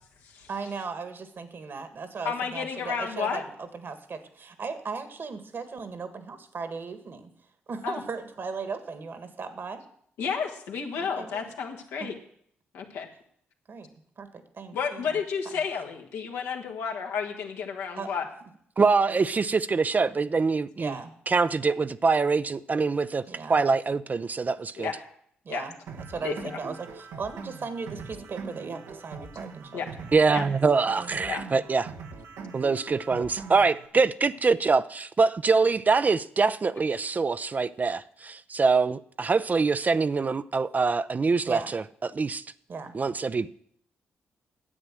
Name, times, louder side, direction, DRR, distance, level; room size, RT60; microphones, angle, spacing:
voice 1, 0.5-7.3 7.7-9.8 11.0-11.5 12.0-12.1 13.7-13.9 14.2-14.3 14.5-15.2 18.0-18.1 20.8-21.1 23.3-23.6 25.5-25.8 26.1-30.1 30.4-31.1 41.4-41.7 42.7-43.0, right 4 dB, 55° right, 1.6 m, -37 dB
voice 2, 2.3-3.4 7.8-8.0 10.2-12.1 12.7-13.1 14.7-18.3 21.7-21.8 24.8-25.0 25.5-25.6 26.2-26.6 29.7-29.9 30.3-30.4 31.3-31.4, left 6 dB, 85° left, 1.6 m, -31 dB
voice 3, 18.8-20.9 21.3-23.2 23.5-24.9 30.1-31.9 32.5-41.8 42.1-42.4 42.9-43.5, right 4 dB, 40° right, 0.5 m, -24 dB
sound 1, 25.9-33.9, right 5 dB, 85° right, 1.2 m, -42 dB
9.8 x 7.9 x 7.6 m
supercardioid pair, 55°, 4 cm